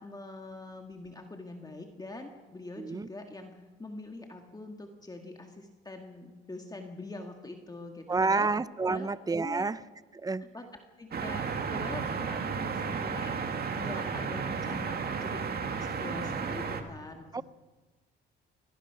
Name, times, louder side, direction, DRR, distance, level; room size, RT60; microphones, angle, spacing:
voice 1, 0.0-8.5 8.8-9.1 9.4-9.6 10.4-10.7 11.0-13.4 13.7-15.4 15.7-17.4, left 2 dB, 20° left, 3 dB, 2.1 m, -44 dB
voice 2, 2.8-3.1 8.1-9.8 10.2-10.4 17.3-17.4, right 3 dB, 20° right, 16 dB, 0.7 m, -29 dB
sound 1, 11.1-16.8, right 5 dB, 50° right, 2.1 m, -33 dB
24.0 x 17.5 x 6.1 m, 1.2 s
cardioid pair, 90°, 20 cm